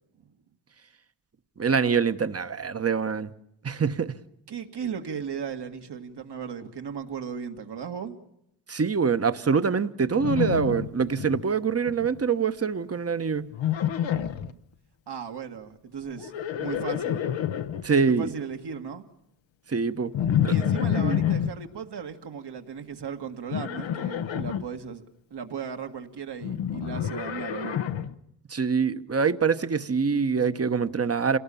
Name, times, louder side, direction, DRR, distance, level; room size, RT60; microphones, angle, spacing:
voice 1, 1.6-3.3 3.6-4.1 8.7-13.5 17.8-18.3 19.7-20.1 20.4-20.5 21.0-21.2 28.5-31.4, right 5 dB, 30° right, 1.1 m, -25 dB
voice 2, 4.5-8.2 14.5-14.6 15.1-17.2 18.2-19.0 20.5-25.0 25.3-27.8, right 6 dB, 60° right, 2.0 m, -36 dB
Livestock farm animals working animals, 10.2-11.4 11.7-12.2 13.5-14.5 16.1-17.8 20.1-21.5 23.5-24.6 26.4-28.1, left 9 dB, 85° left, 1.1 m, -28 dB
27.0 x 18.0 x 7.1 m
cardioid pair, 60°, 45 cm